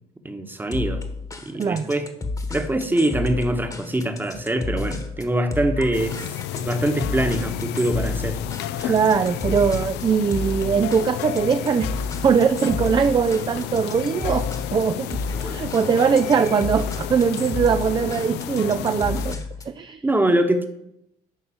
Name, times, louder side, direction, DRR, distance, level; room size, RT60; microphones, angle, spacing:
voice 1, 0.2-1.0 1.4-2.1 2.5-6.3 6.5-8.4 8.8-9.0 20.0-20.7, right 1 dB, 10° right, 7 dB, 1.2 m, -23 dB
sound 1, 0.7-19.8, left 3 dB, 20° left, 1.3 m, -32 dB
sound 2, 5.9-19.3, left 13 dB, 85° left, 0.5 m, -32 dB
sound 3, 7.8-8.2 8.4-9.5 9.7-12.1 12.4-13.8, right 4 dB, 60° right, 1.7 m, -47 dB
voice 2, 8.9-11.9 12.2-19.4 19.7-20.0, right 6 dB, 25° right, 9 dB, 0.5 m, -21 dB
11.0 x 4.0 x 7.1 m, 0.80 s
cardioid pair, 110°, 17 cm